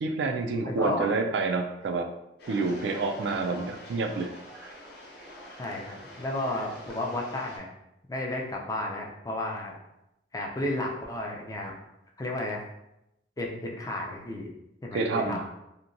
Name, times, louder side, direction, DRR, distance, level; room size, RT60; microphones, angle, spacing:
voice 1, 0.0-2.1 2.5-4.3 4.6-4.7 14.9-15.4, right 3 dB, 70° right, 5 dB, 0.3 m, -28 dB
voice 2, 0.6-1.1 5.6-7.7 8.1-9.7 10.3-11.7 12.2-12.6 13.4-14.5 14.8-15.4, left 1 dB, 20° left, 0 dB, 0.4 m, -32 dB
sound 1, 2.4-7.6, equal, 65° left, 0.7 m, -45 dB
2.8 x 2.1 x 2.5 m, 0.86 s
head